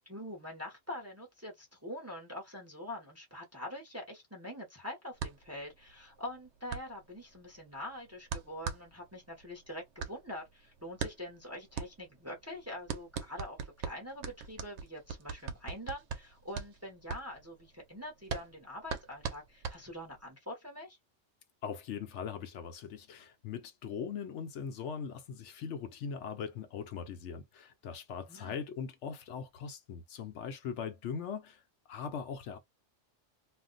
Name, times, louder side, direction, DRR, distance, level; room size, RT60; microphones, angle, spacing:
voice 1, 0.1-21.0 28.3-28.5, left 1 dB, 15° right, 0.6 m, -44 dB
sound 1, 5.2-20.3, right 6 dB, 70° right, 0.9 m, -41 dB
voice 2, 21.6-31.6 31.9-32.6, left 6 dB, 75° left, 0.9 m, -40 dB
2.5 x 2.1 x 3.8 m
omnidirectional pair, 1.2 m